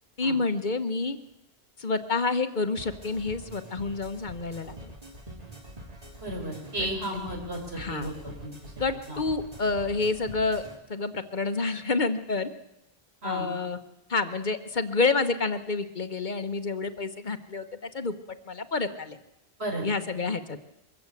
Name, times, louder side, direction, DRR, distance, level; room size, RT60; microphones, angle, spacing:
voice 1, 0.2-1.2 1.8-4.9 6.8-6.9 7.7-8.1 8.8-10.6 10.9-12.5 13.2-13.8 14.1-18.1 18.5-19.2 19.8-20.6, left 3 dB, 50° left, 9 dB, 1.1 m, -28 dB
sound 1, 2.8-10.8, right 1 dB, 35° right, 2.3 m, -45 dB
voice 2, 6.2-8.7 9.1-9.2 13.2-13.5 19.6-19.8, right 1 dB, 75° right, 1 dB, 4.8 m, -34 dB
23.0 x 15.0 x 8.4 m, 0.89 s
omnidirectional pair, 1.1 m